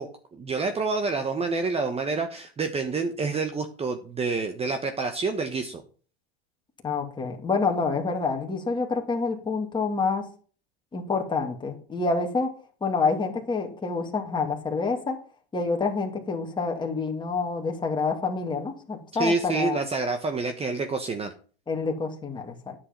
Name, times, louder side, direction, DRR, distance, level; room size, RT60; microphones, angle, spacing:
voice 1, 0.0-5.8 19.1-21.3, right 4 dB, 20° right, 7 dB, 1.2 m, -28 dB
voice 2, 6.8-10.2 10.9-12.5 12.8-15.2 15.5-19.8 21.7-22.8, left 4 dB, 15° left, 1 dB, 2.4 m, -27 dB
9.8 x 7.8 x 5.3 m, 0.40 s
hypercardioid pair, 110°, 30 cm